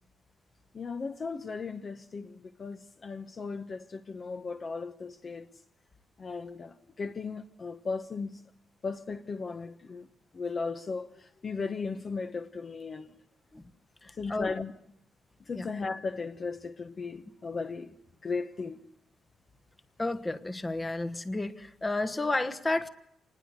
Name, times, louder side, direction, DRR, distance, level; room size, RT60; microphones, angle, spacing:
voice 1, 0.7-5.5 6.2-8.4 8.8-10.1 10.3-13.1 14.2-14.7 15.5-17.9 18.2-18.8, left 4 dB, 30° left, 1.0 m, -36 dB
voice 2, 14.0-14.5 15.5-15.7 20.0-22.9, left 2 dB, 15° left, 1.3 m, -31 dB
27.5 x 20.5 x 8.0 m
cardioid pair, 165°, 0 cm